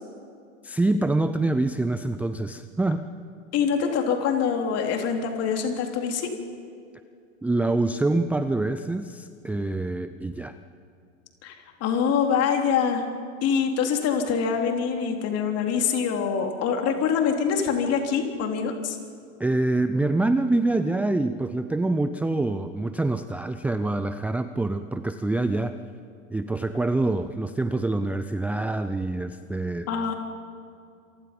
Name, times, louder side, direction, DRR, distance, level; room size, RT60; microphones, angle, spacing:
voice 1, 0.6-3.0 7.4-10.5 19.4-25.8 26.3-29.9, right 2 dB, 5° right, 11 dB, 0.5 m, -25 dB
voice 2, 3.5-6.3 11.4-11.5 11.8-13.0 13.4-19.0 29.9-30.1, left 6 dB, 40° left, 3 dB, 3.6 m, -24 dB
27.5 x 24.5 x 5.4 m, 2.4 s
figure-of-eight pair, 90°, 39 cm